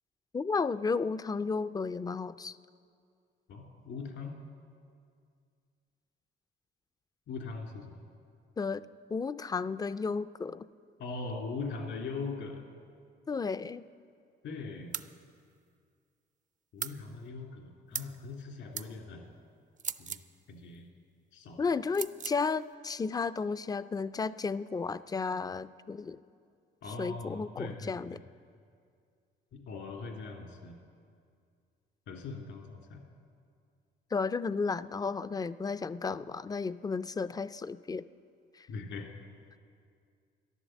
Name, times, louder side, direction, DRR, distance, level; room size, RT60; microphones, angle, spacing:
voice 1, 0.3-2.6 8.6-8.8 9.1-10.7 13.3-13.8 21.6-26.2 27.0-28.2 34.1-38.0 38.6-38.7, left 4 dB, 20° left, 14 dB, 0.3 m, -33 dB
voice 2, 3.5-4.4 7.3-8.0 11.0-12.6 14.4-15.0 16.7-19.3 20.0-20.2 20.5-20.9 21.3-21.7 26.8-28.2 29.5-30.8 32.1-33.0 38.7-39.1, left 4 dB, 75° left, 2 dB, 2.3 m, -41 dB
sound 1, 14.9-15.1 16.8-17.0 17.9-18.2 18.7-18.9 19.8-20.3 21.9-22.4, right 7 dB, 40° right, 0.5 m, -37 dB
13.5 x 11.0 x 7.4 m, 2.3 s
cardioid pair, 90°, 20 cm